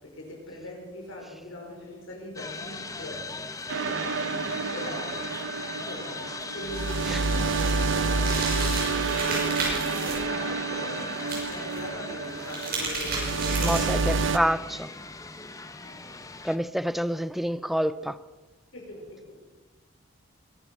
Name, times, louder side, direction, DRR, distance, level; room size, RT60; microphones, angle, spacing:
voice 1, 0.0-3.3 3.8-5.2 5.9-14.2 15.8-16.1 18.7-19.4, left 1 dB, 85° left, 5.3 m, -41 dB
sound 1, 2.3-16.6, left 3 dB, 15° left, 1.0 m, -39 dB
sound 2, 3.7-14.4, right 4 dB, 65° right, 0.7 m, -29 dB
sound 3, 6.8-10.1 11.2-11.8 12.3-14.0, right 3 dB, 50° right, 6.0 m, -33 dB
voice 2, 7.1-7.4 13.6-14.9 16.4-18.2, equal, ahead, 0.5 m, -28 dB
22.0 x 11.0 x 5.6 m
head